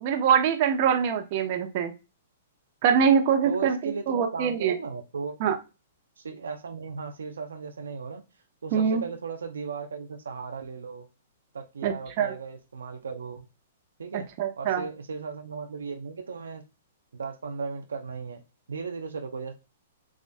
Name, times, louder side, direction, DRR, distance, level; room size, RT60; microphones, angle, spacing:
voice 1, 0.0-1.9 2.8-4.7 5.4-5.6 8.7-9.0 11.8-12.3 14.4-14.8, right 7 dB, 45° right, 0.9 m, -24 dB
voice 2, 3.4-5.4 6.2-8.2 8.6-11.1 11.5-13.4 14.0-14.3 14.6-16.6 17.1-18.4 18.7-19.5, right 5 dB, 90° right, 0.6 m, -36 dB
7.2 x 2.5 x 2.2 m
hypercardioid pair, 130°, 0 cm